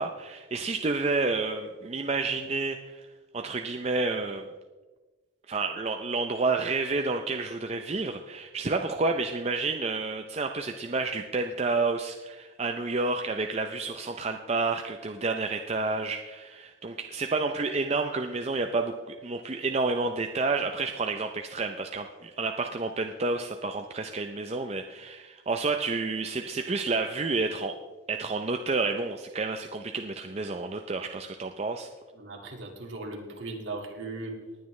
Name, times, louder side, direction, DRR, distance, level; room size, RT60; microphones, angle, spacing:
voice 1, 0.0-3.1 3.3-4.5 5.5-27.8 28.1-31.9, right 3 dB, 30° right, 5 dB, 0.5 m, -30 dB
voice 2, 32.1-34.4, right 2 dB, 65° right, 1 dB, 2.0 m, -38 dB
19.5 x 9.2 x 3.2 m, 1.3 s
head